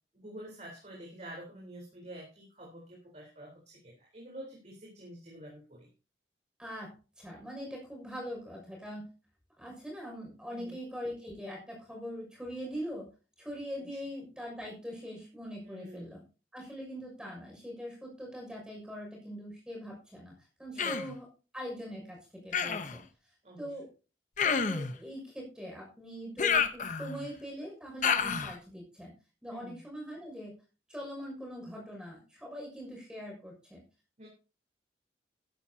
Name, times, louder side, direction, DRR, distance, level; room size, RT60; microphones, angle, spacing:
voice 1, 0.1-5.9 10.5-10.8 15.7-16.1 20.7-21.0 23.4-23.7 29.5-29.8 34.2-34.3, right 1 dB, 40° right, -2 dB, 4.0 m, -48 dB
voice 2, 6.6-9.1 9.6-13.1 13.4-16.2 16.5-20.3 20.6-21.3 21.5-23.0 23.6-23.9 24.4-29.1 29.4-30.5 30.9-33.8, equal, 5° right, -1 dB, 6.5 m, -42 dB
Human voice, 20.8-21.2 22.5-23.0 24.4-24.9 26.4-27.3 28.0-28.6, left 6 dB, 45° left, 1.0 m, -29 dB
14.5 x 13.0 x 2.9 m, 0.34 s
head